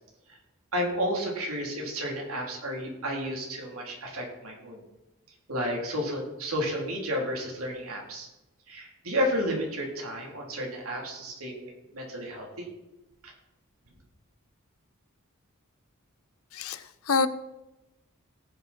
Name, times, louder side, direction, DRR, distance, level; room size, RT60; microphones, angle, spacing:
voice 1, 0.7-4.8 5.5-8.3 8.7-12.7 13.2-13.3, equal, 90° right, -1 dB, 3.6 m, -32 dB
voice 2, 16.5-17.3, left 4 dB, 80° left, 13 dB, 0.8 m, -27 dB
18.0 x 7.7 x 4.5 m, 0.98 s
head